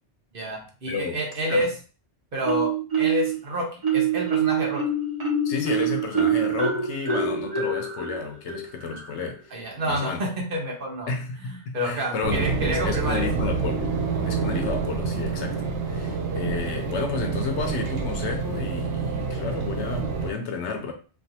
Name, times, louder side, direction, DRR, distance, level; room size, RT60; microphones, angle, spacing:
voice 1, 0.3-1.7 2.3-2.7 3.0-4.8 9.5-11.1 11.4-13.3, equal, 55° right, 1.1 m, -28 dB
voice 2, 0.9-1.2 1.5-1.7 5.4-9.5 9.8-10.2 11.1-13.8 14.2-20.9, left 4 dB, 80° left, 1.0 m, -32 dB
Marimba xylophone, 2.4-3.4 3.8-9.3, right 5 dB, 35° right, 1.0 m, -25 dB
sound 1, 12.2-20.3, right 4 dB, 80° right, 1.0 m, -27 dB
3.3 x 2.4 x 2.8 m
omnidirectional pair, 1.2 m